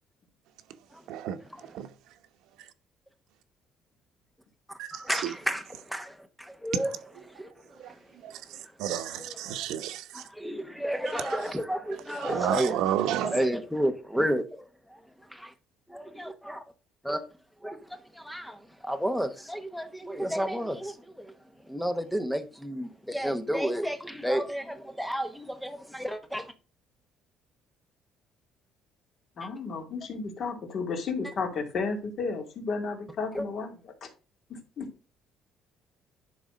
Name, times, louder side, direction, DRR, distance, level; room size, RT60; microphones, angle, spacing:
voice 1, 1.1-1.9 2.6-2.7 4.8-5.3 6.7-6.8 7.8-7.9 8.2-10.2 11.2-11.4 12.2-13.4, right 11 dB, 75° right, 1.0 m, -32 dB
voice 2, 4.9-6.9 7.3-8.0 9.2-9.7 10.1-12.7 13.1-15.0 15.3-15.5 15.9-16.6 17.0-17.2 17.6-21.3 21.7-26.5 33.3-33.4, equal, ahead, 1.0 m, -32 dB
voice 3, 29.4-34.1 34.5-34.9, left 4 dB, 40° left, 2.4 m, -33 dB
11.0 x 4.0 x 6.2 m
cardioid pair, 180°, 0 cm